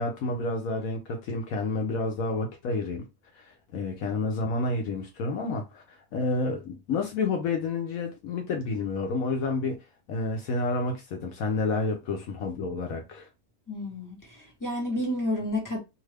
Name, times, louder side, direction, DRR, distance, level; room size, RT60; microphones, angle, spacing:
voice 1, 0.0-3.0 3.3-9.8 10.1-13.3, left 3 dB, 70° left, 1.1 m, -29 dB
voice 2, 13.7-15.8, left 1 dB, 15° left, 1.0 m, -30 dB
2.7 x 2.5 x 3.3 m
omnidirectional pair, 1.6 m